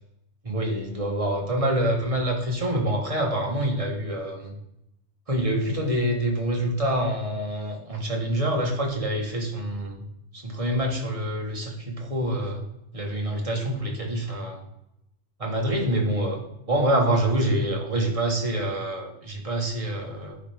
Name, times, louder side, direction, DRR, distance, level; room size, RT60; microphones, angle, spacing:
voice 1, 0.4-4.5 5.3-10.0 10.3-12.6 12.9-14.6 15.4-20.4, right 1 dB, 30° right, 0 dB, 1.3 m, -26 dB
9.4 x 4.4 x 3.4 m, 0.83 s
omnidirectional pair, 1.2 m